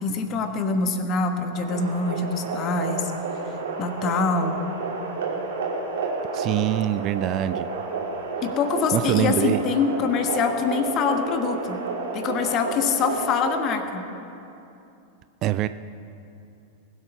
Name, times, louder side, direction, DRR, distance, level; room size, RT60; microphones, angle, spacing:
voice 1, 0.0-3.1 3.8-4.6 8.4-11.8 12.1-14.0, left 5 dB, 35° left, 7 dB, 1.2 m, -25 dB
sound 1, 1.5-13.7, right 3 dB, 60° right, 2.6 m, -31 dB
voice 2, 6.3-7.7 8.9-9.6 15.4-15.7, right 13 dB, 35° right, 12 dB, 0.4 m, -24 dB
20.5 x 8.0 x 5.6 m, 2.7 s
figure-of-eight pair, 90°, 0 cm